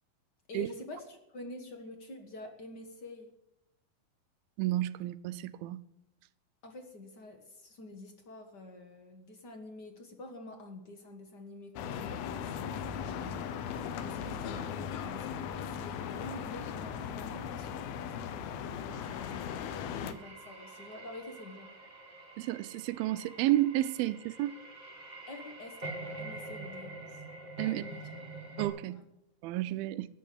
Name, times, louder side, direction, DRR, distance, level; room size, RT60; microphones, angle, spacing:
voice 1, 0.5-3.3 6.6-21.7 25.3-27.2 27.6-28.0 28.9-29.0, left 2 dB, 60° left, 1.1 m, -48 dB
voice 2, 4.6-5.8 22.4-24.5 27.6-27.8 28.6-29.0 29.4-30.1, right 15 dB, 85° right, 2.5 m, -31 dB
sound 1, 11.8-20.1, left 8 dB, 85° left, 2.9 m, -38 dB
sound 2, 18.9-28.7, right 2 dB, 15° right, 1.6 m, -46 dB
13.5 x 10.5 x 8.6 m
omnidirectional pair, 4.3 m